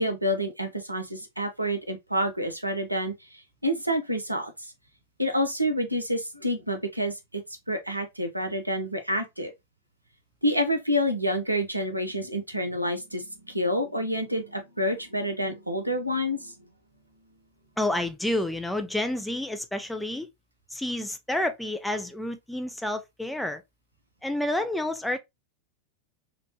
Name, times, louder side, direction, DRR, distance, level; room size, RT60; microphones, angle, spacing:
voice 1, 0.0-4.5 5.2-7.4 7.7-9.5 10.4-16.5, equal, 85° right, 0.5 m, -28 dB
voice 2, 17.8-20.3 20.7-23.6 24.2-25.2, left 1 dB, 5° left, 0.4 m, -29 dB
2.9 x 2.1 x 2.6 m
figure-of-eight pair, 90°, 0 cm